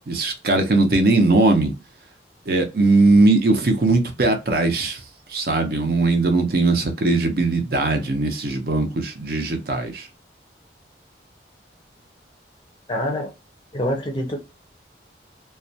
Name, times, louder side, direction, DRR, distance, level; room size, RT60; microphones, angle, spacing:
voice 1, 0.1-1.7 2.5-5.0 5.3-10.1, right 2 dB, 55° right, 0.6 m, -19 dB
voice 2, 12.9-13.3 13.7-14.4, equal, 25° left, 0.5 m, -25 dB
2.3 x 2.1 x 2.6 m
head